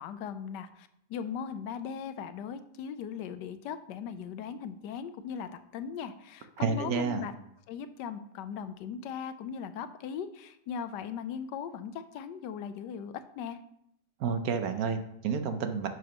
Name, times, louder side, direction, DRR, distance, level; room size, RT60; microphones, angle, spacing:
voice 1, 0.0-7.3 7.7-13.6, left 7 dB, 85° left, 11 dB, 1.2 m, -39 dB
voice 2, 6.6-7.2 14.2-15.9, right 5 dB, 65° right, 8 dB, 1.1 m, -30 dB
10.0 x 6.4 x 2.9 m, 0.74 s
omnidirectional pair, 1.8 m